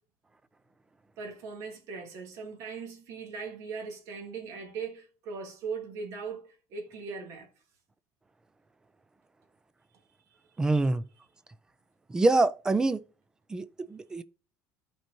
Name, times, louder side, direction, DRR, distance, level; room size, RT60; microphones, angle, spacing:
voice 1, 1.2-7.5, right 5 dB, 50° right, 2.4 m, -39 dB
voice 2, 10.6-11.1 12.1-13.0 13.5-14.2, right 2 dB, 10° right, 0.4 m, -25 dB
13.5 x 4.5 x 2.7 m
cardioid pair, 160°, 7 cm